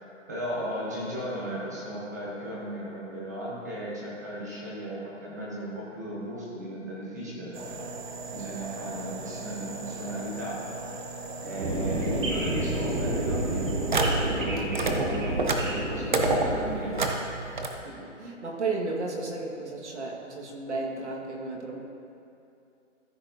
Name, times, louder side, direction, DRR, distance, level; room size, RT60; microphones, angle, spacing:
voice 1, 0.3-7.8 8.3-10.6 11.4-13.8 14.2-17.0, right 1 dB, 15° right, -5 dB, 0.9 m, -36 dB
sound 1, 7.5-14.4 14.7-17.7, right 2 dB, 40° right, 0.7 m, -32 dB
voice 2, 11.4-11.7 17.8-21.8, right 3 dB, 60° right, -2 dB, 1.7 m, -34 dB
sound 2, 11.6-17.0, right 1 dB, 85° right, 2.0 m, -30 dB
14.0 x 7.1 x 2.7 m, 2.7 s
hypercardioid pair, 175°, 38 cm